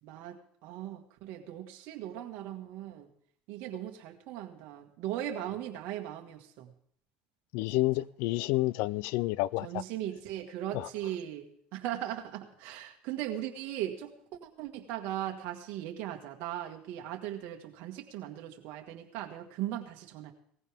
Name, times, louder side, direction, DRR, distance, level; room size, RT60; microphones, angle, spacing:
voice 1, 0.0-3.1 3.5-6.7 7.7-8.1 9.6-20.3, right 12 dB, 65° right, 1.7 m, -38 dB
voice 2, 7.5-9.7, left 19 dB, 70° left, 0.4 m, -29 dB
18.0 x 15.0 x 3.5 m
supercardioid pair, 95°, 4 cm